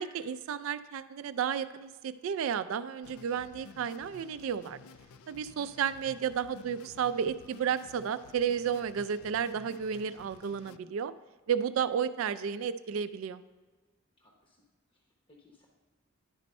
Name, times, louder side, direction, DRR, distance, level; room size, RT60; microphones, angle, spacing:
voice 1, 0.0-4.8 5.3-11.1 11.5-13.4, right 7 dB, 70° right, 13 dB, 0.3 m, -32 dB
sound 1, 3.0-10.8, left 5 dB, 85° left, 0.3 m, -53 dB
voice 2, 14.2-14.6 14.9-15.7, left 2 dB, 25° left, -1 dB, 0.8 m, -63 dB
10.5 x 4.2 x 5.3 m, 1.4 s
head